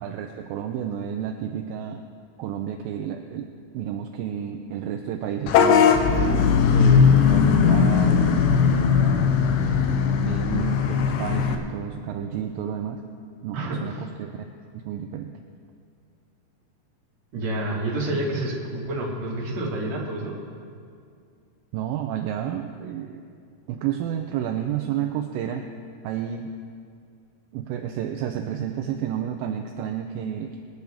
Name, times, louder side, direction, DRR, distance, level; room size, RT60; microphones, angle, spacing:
voice 1, 0.0-2.0 2.4-3.5 3.7-6.0 6.7-8.5 9.0-13.0 13.4-14.4 14.9-15.3 21.7-23.2 23.7-25.6 26.0-26.5 27.5-30.6, right 9 dB, 80° right, 4 dB, 2.3 m, -31 dB
Vehicle horn car horn honking / Bus, 5.5-11.6, left 6 dB, 75° left, 2.2 m, -19 dB
voice 2, 13.5-14.1 17.3-20.3, right 1 dB, 50° right, -3 dB, 2.9 m, -28 dB
23.0 x 9.5 x 3.6 m, 2.3 s
omnidirectional pair, 4.3 m